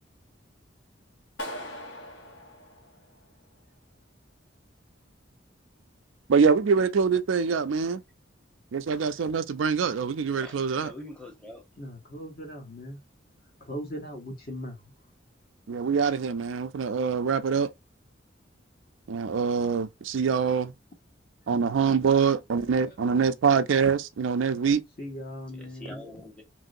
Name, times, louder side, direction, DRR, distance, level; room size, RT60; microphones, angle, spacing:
Clapping, 1.4-3.4, equal, 75° left, 1.1 m, -40 dB
voice 1, 6.3-8.0 8.7-10.9 15.7-17.7 19.1-20.7 21.5-24.8, right 6 dB, 90° right, 0.4 m, -24 dB
voice 2, 10.4-11.6 25.6-26.4, left 1 dB, 5° left, 0.8 m, -44 dB
voice 3, 11.8-13.0 13.6-14.9 21.5-21.6 22.9-23.0 25.0-26.2, equal, 50° left, 1.1 m, -39 dB
3.0 x 2.7 x 2.6 m
head